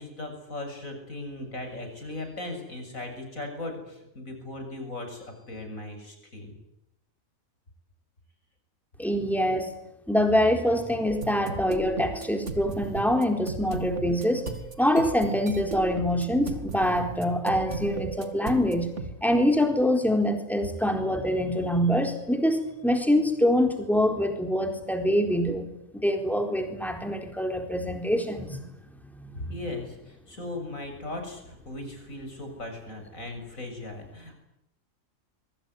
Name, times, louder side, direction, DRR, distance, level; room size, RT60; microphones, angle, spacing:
voice 1, 0.0-6.5 29.3-34.3, left 2 dB, 80° left, 5 dB, 7.2 m, -38 dB
voice 2, 9.0-9.7 10.1-14.5 14.8-18.9 19.2-25.7 25.9-28.7 29.0-29.5, equal, ahead, 4 dB, 4.1 m, -25 dB
sound 1, 11.1-19.1, right 4 dB, 60° right, 2.6 m, -36 dB
25.0 x 23.5 x 9.6 m, 0.85 s
omnidirectional pair, 1.4 m